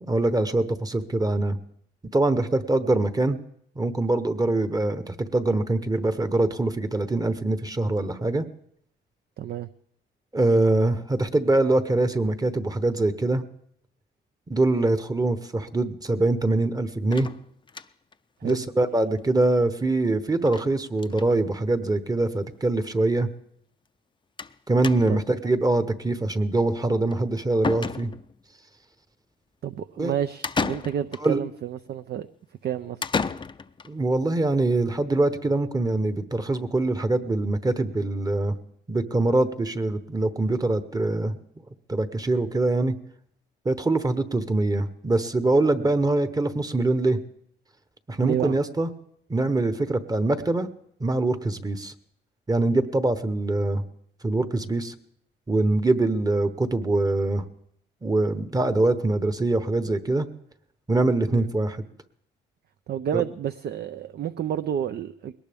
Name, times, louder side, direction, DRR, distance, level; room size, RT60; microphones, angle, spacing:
voice 1, 0.0-1.6 2.1-3.4 3.8-8.4 10.3-13.4 14.5-17.3 18.4-23.3 24.7-28.1 30.0-30.1 31.2-31.4 33.8-38.6 38.9-41.4 41.9-42.9 43.6-47.2 48.1-48.9 49.3-50.7 51.0-51.9 52.5-53.8 54.2-54.9 55.5-57.4 58.0-60.3 60.9-61.8 63.1-63.2, right 2 dB, 20° right, 1.0 m, -23 dB
voice 2, 9.4-9.7 14.7-14.9 18.4-18.6 29.6-32.3 32.6-33.0 48.2-48.6 61.3-61.5 62.9-65.3, right 10 dB, 55° right, 0.5 m, -30 dB
sound 1, 17.1-18.1 18.5-18.6 18.9-19.0 19.2-19.3 20.5-20.7 20.9-21.3 22.2-22.3 22.5-22.6 24.4-24.6 24.8-25.3 27.1-27.2 27.6-28.4 30.4-31.3 33.0-33.9, left 5 dB, 25° left, 0.5 m, -31 dB
21.0 x 18.5 x 3.5 m
cardioid pair, 90°, 20 cm